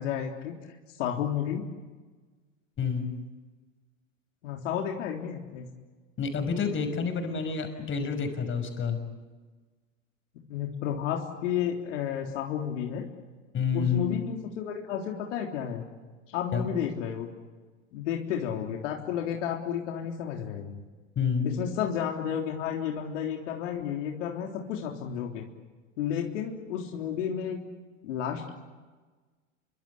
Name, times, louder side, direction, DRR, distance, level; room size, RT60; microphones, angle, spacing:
voice 1, 0.0-1.7 4.4-5.7 10.5-13.1 13.7-15.8 16.3-17.3 17.9-20.8 21.4-25.5 26.0-27.6 28.0-28.6, left 8 dB, 70° left, 1 dB, 3.6 m, -32 dB
voice 2, 2.8-3.1 6.2-9.0 13.5-14.1 16.5-16.7 21.2-21.5, left 6 dB, 30° left, 7 dB, 6.0 m, -28 dB
28.5 x 24.5 x 8.6 m, 1.3 s
hypercardioid pair, 105°, 38 cm